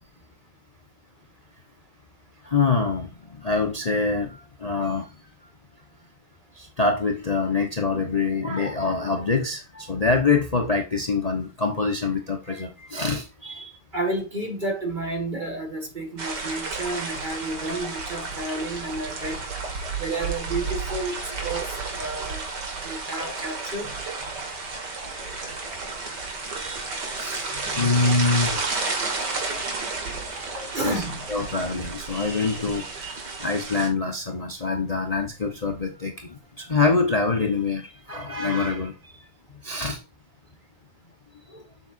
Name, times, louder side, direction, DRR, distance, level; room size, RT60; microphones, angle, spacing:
voice 1, 2.4-5.1 6.6-13.8 21.1-21.2 24.3-24.4 25.0-25.9 26.6-28.9 29.3-29.7 30.0-31.0 31.3-39.2 39.6-40.0 41.5-41.6, left 4 dB, 50° left, 0.4 m, -26 dB
voice 2, 13.9-19.4 20.0-22.5 22.8-23.9 30.7-31.3, right 2 dB, 25° right, 1.9 m, -31 dB
sound 1, 16.2-33.9, right 4 dB, 55° right, 2.3 m, -32 dB
7.4 x 7.2 x 2.6 m
omnidirectional pair, 2.3 m